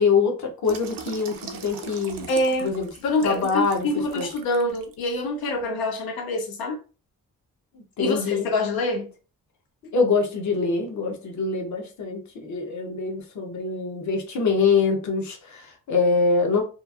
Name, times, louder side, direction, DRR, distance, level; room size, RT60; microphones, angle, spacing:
voice 1, 0.0-2.3 2.6-2.9 3.2-3.9 4.2-4.3 7.7-8.5 9.9-16.6, left 4 dB, 55° left, 0.8 m, -24 dB
Water tap faucet / Sink (filling or washing), 0.6-4.9 5.4-5.6, right 6 dB, 70° right, 0.6 m, -40 dB
voice 2, 2.3-2.7 3.0-6.8 8.0-9.1, left 2 dB, 85° left, 0.7 m, -26 dB
3.0 x 2.3 x 2.3 m
wide cardioid pair, 155°, 35 cm